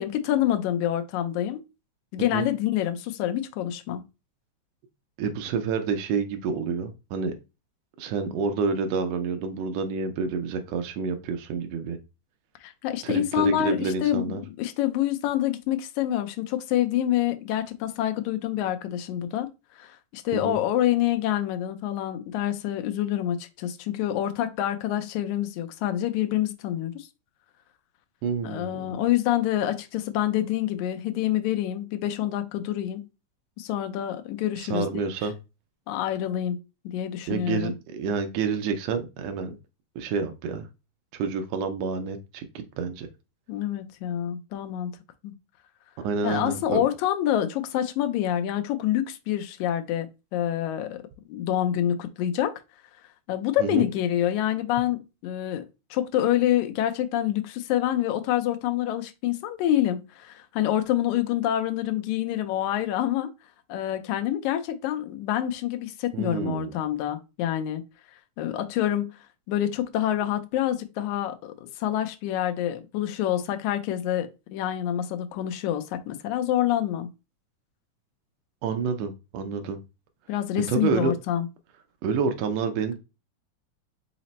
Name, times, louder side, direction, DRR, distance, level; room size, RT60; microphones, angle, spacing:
voice 1, 0.0-1.6 2.1-4.0 12.6-19.5 19.8-27.1 28.4-33.0 33.6-34.9 35.9-36.6 36.8-37.7 43.5-45.0 45.2-45.3 46.2-51.0 51.3-52.5 53.3-55.6 55.9-63.3 63.7-67.8 68.4-69.2 69.5-77.1 79.5-79.6 80.3-81.5, left 12 dB, 80° left, 1.8 m, -27 dB
voice 2, 5.2-7.3 8.0-12.0 13.0-14.4 20.3-20.6 28.2-28.9 34.6-35.3 37.3-39.6 40.0-40.7 41.1-43.1 46.0-46.8 53.6-53.9 66.1-66.7 78.6-79.8 80.7-81.1 82.0-83.0, right 5 dB, 90° right, 1.4 m, -28 dB
5.0 x 2.0 x 4.0 m
omnidirectional pair, 3.5 m